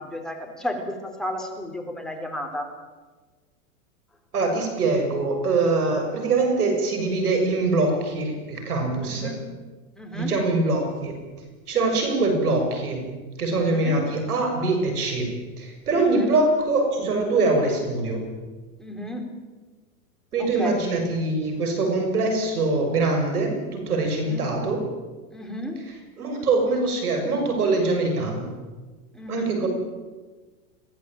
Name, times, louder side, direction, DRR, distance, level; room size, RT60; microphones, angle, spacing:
voice 1, 0.0-2.7 9.0-9.4 10.0-10.3 13.6-14.0 16.1-16.3 18.8-19.2 20.4-20.9 24.3-24.5 25.3-25.8 29.1-29.7, left 1 dB, ahead, 2 dB, 3.7 m, -33 dB
voice 2, 4.3-9.4 10.1-11.2 11.7-13.0 13.4-18.3 20.3-24.9 25.9-28.5 29.3-29.7, right 3 dB, 90° right, 4 dB, 7.2 m, -23 dB
22.0 x 16.0 x 9.1 m, 1.3 s
hypercardioid pair, 130°, 43 cm